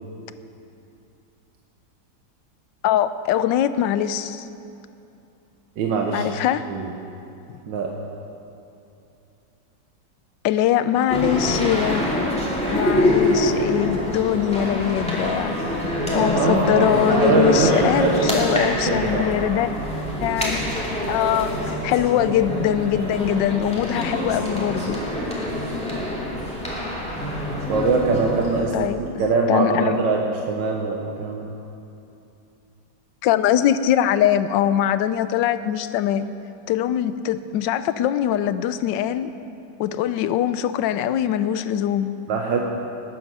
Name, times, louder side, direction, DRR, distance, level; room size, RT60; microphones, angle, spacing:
voice 1, 2.8-4.5 6.1-6.7 10.4-12.0 12.7-15.5 16.1-19.7 20.2-20.6 21.1-25.0 28.7-29.0 29.5-30.0 33.2-36.3 36.7-39.3 39.8-42.2, left 11 dB, 80° left, 13 dB, 1.3 m, -22 dB
voice 2, 5.8-6.3 6.7-6.9 7.6-7.9 16.3-19.3 27.7-31.5 42.3-42.6, right 4 dB, 75° right, 0 dB, 1.7 m, -23 dB
sound 1, 11.1-28.6, left 1 dB, 5° left, 2.4 m, -25 dB
20.5 x 9.1 x 6.1 m, 2.8 s
omnidirectional pair, 2.0 m